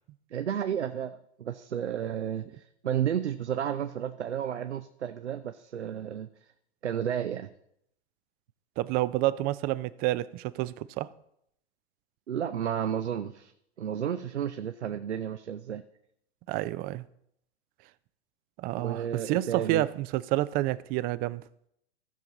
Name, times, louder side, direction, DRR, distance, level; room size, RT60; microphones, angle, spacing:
voice 1, 0.3-6.3 6.8-7.5 12.3-13.5 13.8-15.8 18.8-19.8, right 9 dB, 85° right, 0.6 m, -32 dB
voice 2, 8.8-11.1 16.5-17.0 18.6-21.4, right 16 dB, 30° right, 0.4 m, -29 dB
15.5 x 5.8 x 4.0 m
hypercardioid pair, 100°, 33 cm